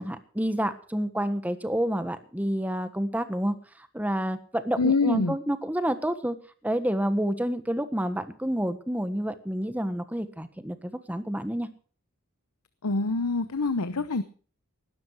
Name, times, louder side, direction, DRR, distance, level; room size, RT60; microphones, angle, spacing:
voice 1, 0.0-3.6 3.9-6.4 6.6-11.7, equal, 5° right, 11 dB, 1.3 m, -29 dB
voice 2, 4.8-5.4 12.8-14.2, left 3 dB, 85° left, 12 dB, 0.9 m, -25 dB
19.5 x 12.5 x 4.8 m, 0.42 s
head